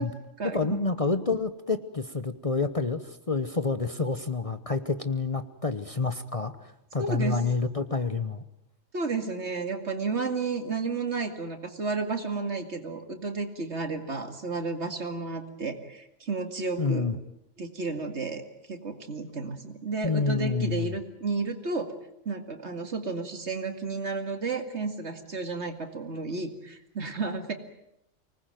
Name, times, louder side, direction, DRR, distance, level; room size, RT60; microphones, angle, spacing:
voice 1, 0.0-0.8 7.0-7.4 8.9-17.1 17.6-18.4 18.7-21.9 22.3-27.5, right 4 dB, 60° right, 7 dB, 2.5 m, -32 dB
voice 2, 0.5-8.4 16.8-17.1 20.0-21.0, left 4 dB, 30° left, 10 dB, 1.0 m, -28 dB
25.0 x 19.5 x 9.2 m, 0.82 s
omnidirectional pair, 1.3 m